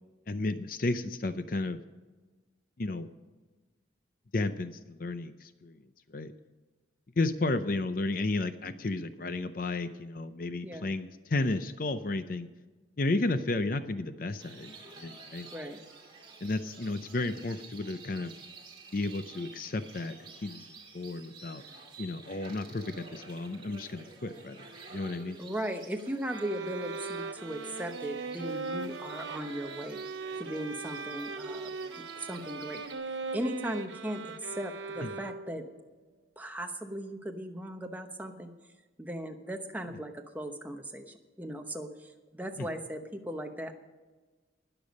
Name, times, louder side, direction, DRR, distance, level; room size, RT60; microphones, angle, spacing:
voice 1, 0.3-1.8 2.8-3.1 4.3-5.8 6.1-6.3 7.2-12.5 13.0-15.5 16.4-18.3 18.9-20.6 20.9-21.6 22.0-24.6 24.9-25.4 35.0-35.2 42.6-42.7, left 2 dB, 45° left, 11 dB, 0.6 m, -33 dB
sound 1, 14.4-32.9, right 4 dB, 25° right, 2.2 m, -50 dB
voice 2, 25.4-30.0 30.4-31.7 32.2-32.8 33.3-35.6 36.4-38.5 39.0-43.7, right 1 dB, 10° right, 5 dB, 0.9 m, -37 dB
sound 2, 26.3-35.7, right 4 dB, 75° right, 0.8 m, -39 dB
20.0 x 7.0 x 5.2 m, 1.3 s
head